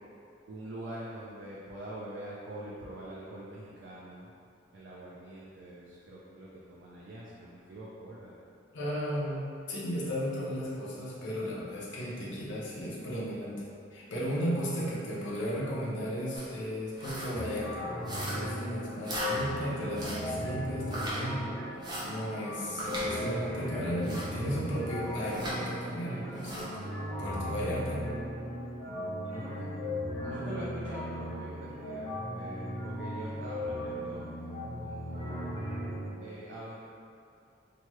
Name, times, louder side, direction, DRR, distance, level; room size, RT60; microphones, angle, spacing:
voice 1, 0.5-4.3 4.7-8.3 29.3-34.2 34.8-35.5 36.2-36.8, right 1 dB, 60° right, -7 dB, 0.4 m, -44 dB
voice 2, 8.7-13.7 13.9-17.8 18.3-21.5 22.0-26.9 27.2-28.1 28.8-29.0, equal, 70° left, -7 dB, 0.7 m, -35 dB
sound 1, 16.3-16.5 16.9-17.3 18.0-18.6 19.0-19.3 19.9-20.3 20.9-21.2 21.8-22.1 22.8-23.1 24.0-24.3 25.2-25.6 26.3-26.7, right 1 dB, 20° right, 0.6 m, -38 dB
sound 2, 17.3-36.1, left 1 dB, 20° left, 1.1 m, -37 dB
2.9 x 2.3 x 3.0 m, 2.5 s
head